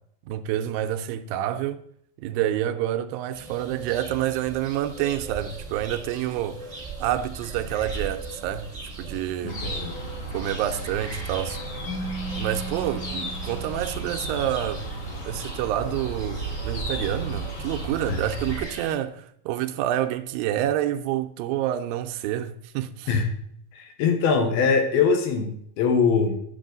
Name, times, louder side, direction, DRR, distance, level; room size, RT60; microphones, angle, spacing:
voice 1, 0.3-1.8 2.2-6.6 7.0-8.7 9.0-9.6 10.3-11.6 12.4-14.8 15.2-23.1, right 12 dB, 85° right, 2.3 m, -28 dB
sound 1, 3.3-18.9, right 3 dB, 25° right, 0.7 m, -40 dB
voice 2, 9.4-10.0 18.1-18.2 23.1-23.3 23.7-26.4, left 5 dB, 90° left, 3.1 m, -22 dB
sound 2, 9.5-18.6, right 2 dB, 45° left, 2.0 m, -34 dB
Keyboard (musical), 11.9-14.6, right 1 dB, 60° left, 3.8 m, -37 dB
9.9 x 7.0 x 3.8 m
omnidirectional pair, 4.2 m